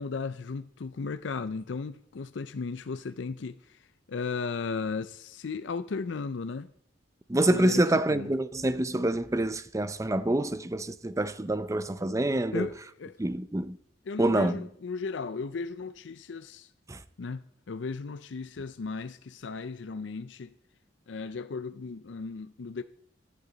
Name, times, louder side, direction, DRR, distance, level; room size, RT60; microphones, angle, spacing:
voice 1, 0.0-6.7 7.4-8.3 12.5-12.7 13.0-13.2 14.0-16.7 17.2-20.5 21.1-22.8, left 4 dB, 80° left, 0.5 m, -36 dB
voice 2, 7.3-12.7 13.2-13.8 14.2-14.5 16.9-17.0, right 1 dB, 15° right, 0.6 m, -26 dB
16.0 x 11.5 x 4.0 m
head